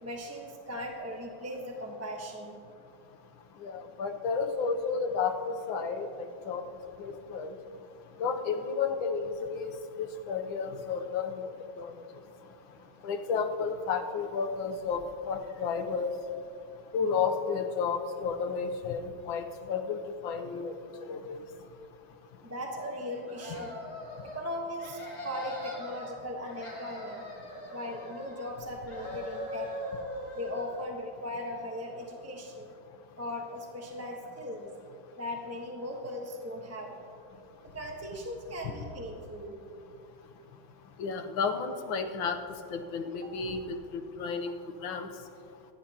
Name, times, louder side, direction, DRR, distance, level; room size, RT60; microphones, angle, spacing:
voice 1, 0.0-2.5 22.4-23.8 24.2-27.2 27.7-29.7 30.3-32.7 33.2-34.7 35.2-37.0 37.6-39.6 43.2-43.3, left 1 dB, 10° right, 0 dB, 0.9 m, -38 dB
voice 2, 3.6-6.1 6.5-6.6 7.0-7.5 8.2-9.7 10.0-11.5 11.8-11.9 13.0-16.1 16.9-20.7 21.1-21.4 41.0-42.4 42.7-44.5 44.8-45.1, left 5 dB, 75° left, 6 dB, 1.6 m, -32 dB
sound 1, 23.3-24.4 24.8-26.1 26.4-28.6 28.9-30.9, left 1 dB, 45° left, 2.8 m, -41 dB
26.0 x 11.0 x 2.9 m, 2.7 s
omnidirectional pair, 2.2 m